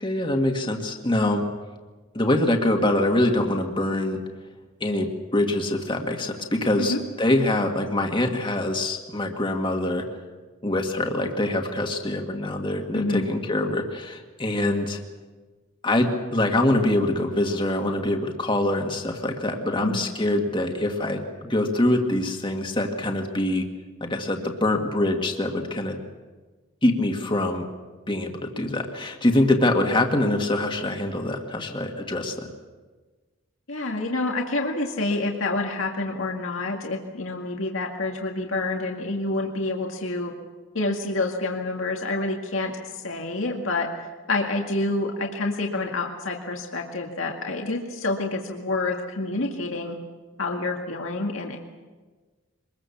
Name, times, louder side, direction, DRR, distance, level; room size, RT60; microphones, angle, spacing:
voice 1, 0.0-1.4 2.1-4.2 4.8-10.1 10.6-15.0 15.8-23.6 24.0-26.0 26.8-27.7 28.1-32.5, left 1 dB, 25° left, 3 dB, 2.0 m, -24 dB
voice 2, 12.9-13.3 19.8-20.0 33.7-40.3 40.7-42.7 43.0-50.0 50.4-51.6, left 2 dB, 80° left, 1 dB, 2.0 m, -28 dB
24.5 x 21.0 x 7.2 m, 1.3 s
head